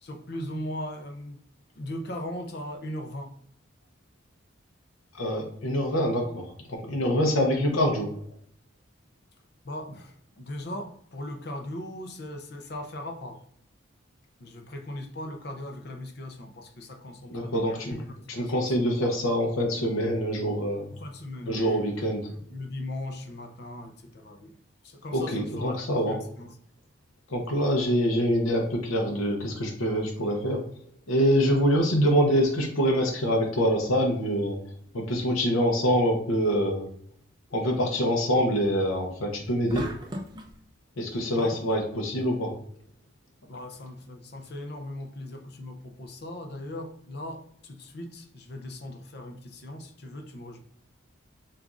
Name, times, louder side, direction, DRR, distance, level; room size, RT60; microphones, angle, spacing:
voice 1, 0.0-1.4 1.8-3.3 9.6-13.4 14.4-18.7 20.9-22.1 22.5-24.5 24.8-26.5 41.4-41.6 43.5-50.6, left 1 dB, 50° left, 0.5 m, -38 dB
voice 2, 5.1-8.1 17.3-18.0 18.3-20.9 21.4-22.3 25.1-26.2 27.3-30.6 31.1-34.6 34.9-36.9 37.5-39.9 41.0-42.5, equal, 85° left, 0.7 m, -25 dB
sound 1, 39.7-40.6, equal, 20° right, 0.4 m, -36 dB
6.9 x 2.5 x 2.5 m
head